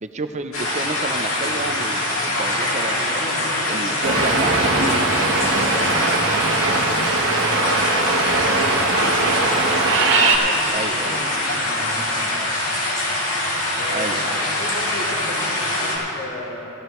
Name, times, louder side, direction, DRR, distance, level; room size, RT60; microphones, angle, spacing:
voice 1, 0.0-3.0 3.7-4.9 10.0-10.4 10.7-11.2 13.9-14.2, right 3 dB, 35° right, 8 dB, 0.6 m, -30 dB
sound 1, 0.5-16.0, left 1 dB, 90° left, 2.4 m, -24 dB
voice 2, 2.6-4.6 5.4-9.5 10.4-12.4 13.8-16.6, left 1 dB, 35° left, -11 dB, 2.5 m, -35 dB
sound 2, 4.0-10.4, right 3 dB, 65° right, 1.2 m, -21 dB
16.5 x 13.0 x 3.2 m, 2.9 s
head